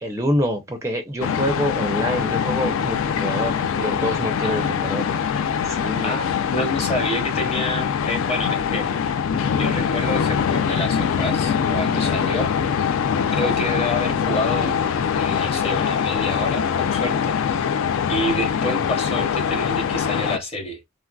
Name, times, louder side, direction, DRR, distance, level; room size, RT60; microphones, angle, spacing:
voice 1, 0.0-5.1 5.6-6.1, equal, 15° right, 0.4 m, -26 dB
sound 1, 1.2-20.4, left 7 dB, 70° left, 0.3 m, -23 dB
voice 2, 4.4-5.5 6.0-8.9 9.5-12.5 13.3-14.8 15.1-17.7 18.1-20.8, left 1 dB, 30° left, 0.8 m, -28 dB
3.1 x 2.5 x 2.2 m
head